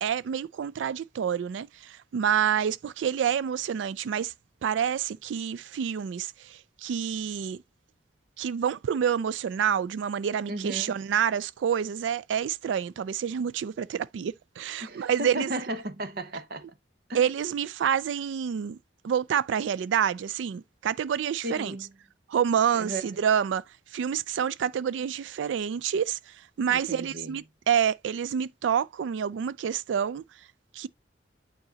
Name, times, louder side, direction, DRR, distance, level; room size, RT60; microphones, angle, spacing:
voice 1, 0.0-4.3 4.6-7.6 8.4-15.5 17.1-18.8 19.0-21.8 22.3-23.6 23.9-30.2 30.7-30.9, right 8 dB, 85° right, 0.3 m, -28 dB
voice 2, 10.5-11.0 14.8-16.6 17.1-17.2 21.4-21.9 22.7-23.1 26.7-27.3, right 1 dB, 55° right, 1.0 m, -35 dB
8.9 x 4.0 x 3.9 m
head